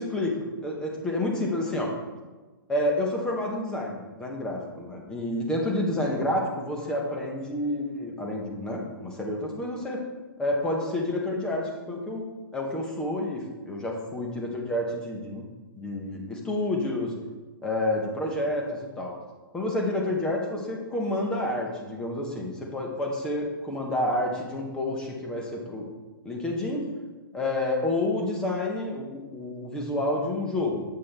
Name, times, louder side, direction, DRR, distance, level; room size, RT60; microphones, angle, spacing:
voice 1, 0.0-1.9 2.7-10.0 10.4-12.2 12.5-15.4 15.7-17.1 17.6-19.1 19.5-25.9 26.2-26.9 27.3-30.8, left 1 dB, 5° left, 0 dB, 0.8 m, -29 dB
7.2 x 6.0 x 3.3 m, 1.3 s
hypercardioid pair, 165°, 12 cm